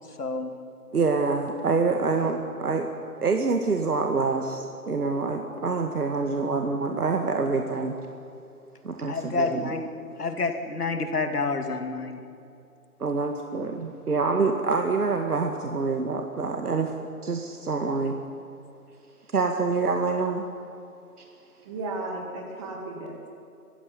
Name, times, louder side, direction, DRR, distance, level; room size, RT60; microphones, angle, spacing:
voice 1, 0.2-0.5 9.1-9.9 10.2-12.2, left 3 dB, 75° left, 6 dB, 2.9 m, -28 dB
voice 2, 0.9-2.9 3.2-8.0 8.8-9.7 13.0-16.9 17.2-18.1 19.3-20.4, right 4 dB, 70° right, 4 dB, 2.1 m, -26 dB
voice 3, 21.7-23.3, right 2 dB, 20° right, 2 dB, 2.6 m, -34 dB
23.5 x 15.5 x 9.6 m, 2.6 s
hypercardioid pair, 165°, 46 cm